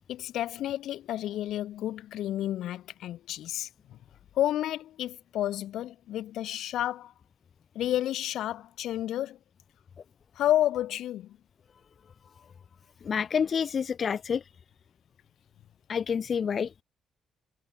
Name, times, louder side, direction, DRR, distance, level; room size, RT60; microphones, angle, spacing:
voice 1, 0.0-4.0 4.4-7.1 7.8-9.4 10.4-11.4, left 13 dB, 80° left, 2.0 m, -31 dB
voice 2, 13.0-14.4 15.9-16.7, left 7 dB, 50° left, 0.3 m, -28 dB
cardioid pair, 90°, 0 cm